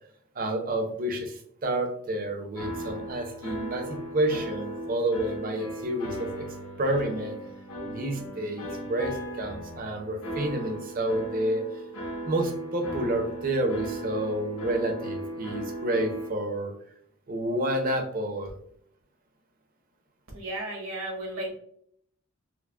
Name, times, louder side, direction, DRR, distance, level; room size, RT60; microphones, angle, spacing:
voice 1, 0.3-6.5 6.8-7.4 7.8-11.7 12.3-16.7 17.3-18.6, right 1 dB, 45° right, 4 dB, 0.6 m, -29 dB
sound 1, 2.6-16.3, right 1 dB, 85° left, 1.2 m, -37 dB
voice 2, 20.3-21.6, right 1 dB, 75° right, -1 dB, 1.3 m, -34 dB
4.5 x 2.0 x 2.3 m, 0.67 s
head